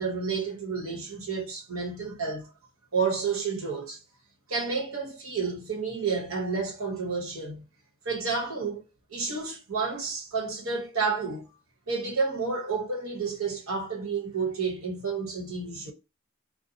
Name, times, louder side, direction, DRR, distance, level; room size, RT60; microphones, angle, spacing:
voice 1, 0.0-2.5 2.9-4.0 4.5-7.6 8.0-8.8 9.1-11.4 11.9-15.9, right 4 dB, 80° right, 1.0 m, -30 dB
2.7 x 2.0 x 2.7 m
head